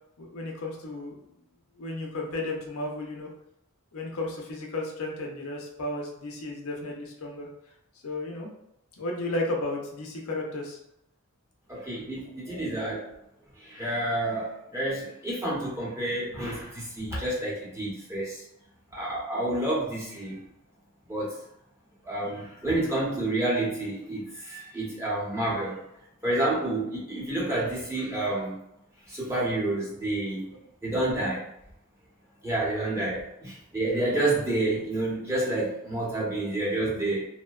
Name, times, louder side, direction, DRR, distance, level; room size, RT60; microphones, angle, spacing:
voice 1, 0.2-1.2 1.8-3.3 3.9-7.5 8.0-8.5 9.0-10.8, left 2 dB, 80° left, 0 dB, 0.5 m, -33 dB
voice 2, 11.7-13.0 13.6-18.4 18.9-20.4 21.1-21.3 22.0-25.8 26.2-28.5 29.1-30.5 30.8-31.4 32.4-37.3, right 2 dB, 15° right, -7 dB, 0.8 m, -29 dB
2.6 x 2.1 x 2.3 m, 0.80 s
head